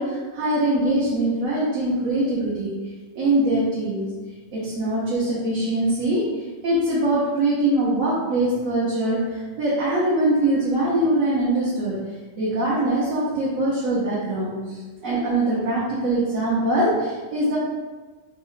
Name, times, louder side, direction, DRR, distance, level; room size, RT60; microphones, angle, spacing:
voice 1, 0.0-2.7 3.1-4.1 4.5-11.9 12.4-17.6, right 1 dB, 80° right, -7 dB, 1.2 m, -23 dB
4.2 x 2.1 x 3.9 m, 1.3 s
omnidirectional pair, 1.4 m